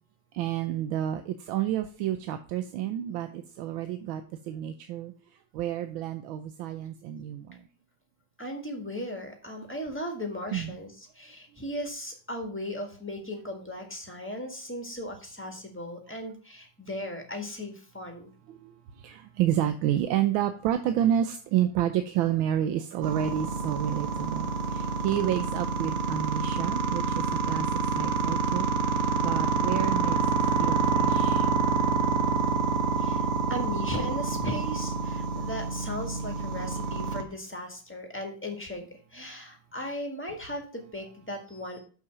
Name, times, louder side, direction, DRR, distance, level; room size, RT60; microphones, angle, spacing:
voice 1, 0.3-5.1 5.5-7.6 10.5-10.8 18.5-18.7 19.0-27.7 27.9-30.2 30.6-31.5 41.5-41.8, right 11 dB, 85° right, 8 dB, 1.4 m, -30 dB
voice 2, 8.4-18.3 31.2-31.3 33.0-41.8, left 1 dB, 5° left, 3 dB, 1.5 m, -37 dB
sound 1, 23.0-37.2, right 5 dB, 45° right, 1.0 m, -27 dB
6.6 x 5.7 x 6.0 m, 0.39 s
omnidirectional pair, 2.2 m